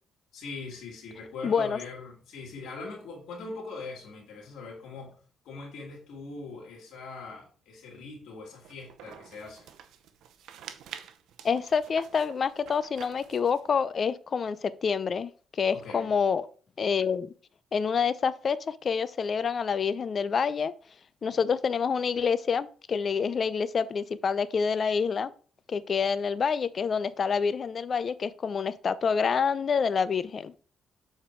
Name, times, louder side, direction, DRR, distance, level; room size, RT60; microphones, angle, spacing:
voice 1, 0.3-5.2 5.4-9.7 15.7-16.1, left 3 dB, 80° left, 2.2 m, -41 dB
voice 2, 1.4-1.8 11.4-15.3 15.6-16.5 16.8-17.3 17.7-20.7 21.2-25.3 25.7-30.5, left 6 dB, 45° left, 0.5 m, -27 dB
sound 1, 8.6-13.7, right 9 dB, 80° right, 0.7 m, -48 dB
6.9 x 4.3 x 4.5 m
cardioid pair, 90°, 0 cm